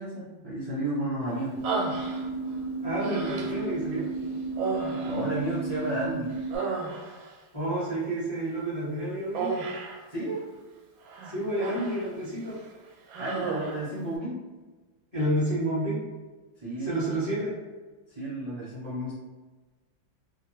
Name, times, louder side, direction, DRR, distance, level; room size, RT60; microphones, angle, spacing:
voice 1, 0.0-1.6 5.0-6.3 10.1-10.5 13.2-14.4 16.6-16.9 18.1-19.1, right 1 dB, 35° right, -11 dB, 0.6 m, -32 dB
sound 1, 1.6-6.6, right 3 dB, 60° right, 1.0 m, -33 dB
Human voice, 1.6-2.5 3.0-3.7 4.5-6.0 6.3-7.4 9.4-10.0 11.1-12.1 12.4-12.7 13.1-13.9, right 4 dB, 80° right, 1.3 m, -33 dB
voice 2, 2.8-4.1 7.5-9.5 11.2-12.6 15.1-16.0 16.8-17.5, right 1 dB, 20° left, -10 dB, 0.8 m, -29 dB
3.1 x 2.2 x 3.0 m, 1.3 s
omnidirectional pair, 2.1 m